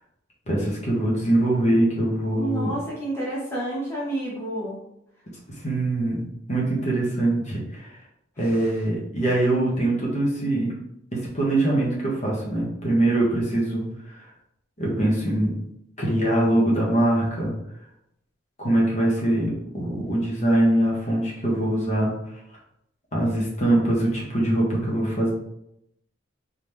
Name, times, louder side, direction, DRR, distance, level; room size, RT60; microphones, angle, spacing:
voice 1, 0.5-2.7 5.6-7.9 8.4-10.7 11.1-13.9 14.1-14.2 14.8-15.5 16.0-17.5 18.6-22.1 23.1-25.3, right 1 dB, 40° left, -4 dB, 1.3 m, -23 dB
voice 2, 2.4-4.8 8.4-8.7, right 1 dB, 15° left, -7 dB, 1.0 m, -30 dB
4.0 x 3.5 x 3.3 m, 0.80 s
head